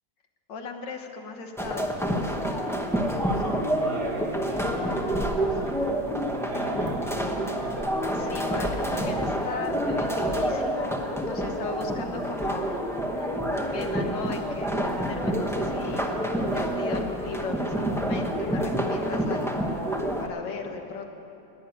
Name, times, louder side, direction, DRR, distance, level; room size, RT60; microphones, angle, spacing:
voice 1, 0.5-1.9 8.2-12.7 13.1-16.1 16.5-19.7 20.2-21.1, left 5 dB, 80° left, 4 dB, 1.9 m, -37 dB
sound 1, 1.6-20.3, equal, 5° left, 0.5 m, -28 dB
voice 2, 3.2-7.2 7.5-8.0, right 1 dB, 60° right, 0 dB, 2.2 m, -40 dB
12.0 x 9.9 x 9.8 m, 2.9 s
omnidirectional pair, 1.9 m